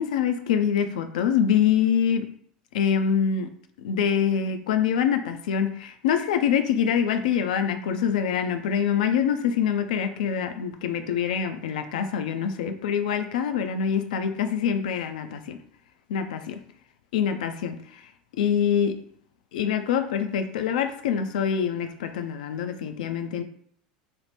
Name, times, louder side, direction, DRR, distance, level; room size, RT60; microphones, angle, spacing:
voice 1, 0.0-2.3 2.7-3.5 3.8-15.6 16.1-16.6 17.1-18.0 18.4-19.0 19.5-23.4, left 8 dB, 75° left, 8 dB, 0.3 m, -25 dB
2.9 x 2.0 x 3.2 m, 0.64 s
hypercardioid pair, 85°, 4 cm